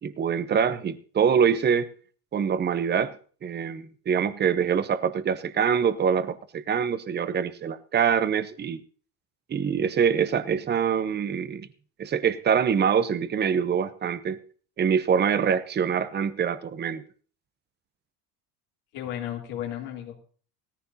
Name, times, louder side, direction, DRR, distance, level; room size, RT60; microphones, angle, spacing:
voice 1, 0.0-1.9 2.3-3.1 3.4-8.8 9.5-11.7 12.0-14.4 14.8-17.0, right 7 dB, 25° right, 14 dB, 0.8 m, -24 dB
voice 2, 18.9-20.2, left 11 dB, 80° left, -1 dB, 3.1 m, -34 dB
17.0 x 14.5 x 2.8 m, 0.43 s
cardioid pair, 120°, 40 cm